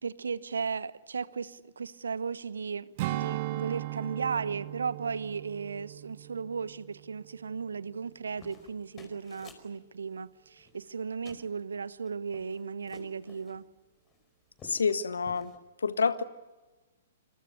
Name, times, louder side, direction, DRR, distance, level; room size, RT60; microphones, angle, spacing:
voice 1, 0.0-13.6, right 5 dB, 65° right, 1.1 m, -36 dB
Strum, 3.0-7.7 8.1-8.3, right 17 dB, 40° right, 1.0 m, -37 dB
sound 1, 8.1-9.7 10.6-11.0 11.2-11.4 11.9-13.6 14.1-14.2 14.5-15.0 15.2-15.6, left 4 dB, 20° left, 4.8 m, -53 dB
voice 2, 14.6-15.5 15.8-16.2, left 5 dB, 70° left, 1.6 m, -28 dB
27.0 x 26.5 x 6.8 m
figure-of-eight pair, 115°, 0 cm